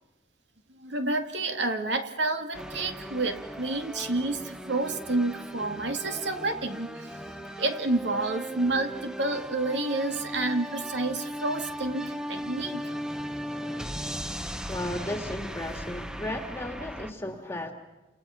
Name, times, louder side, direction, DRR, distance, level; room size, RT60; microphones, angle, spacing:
voice 1, 0.7-7.1 7.6-12.9, right 2 dB, 70° right, 6 dB, 2.2 m, -29 dB
sound 1, 2.5-17.1, equal, 5° right, 0.9 m, -37 dB
voice 2, 14.7-17.7, left 1 dB, 15° left, 4 dB, 1.9 m, -34 dB
29.5 x 28.5 x 5.8 m, 1.1 s
head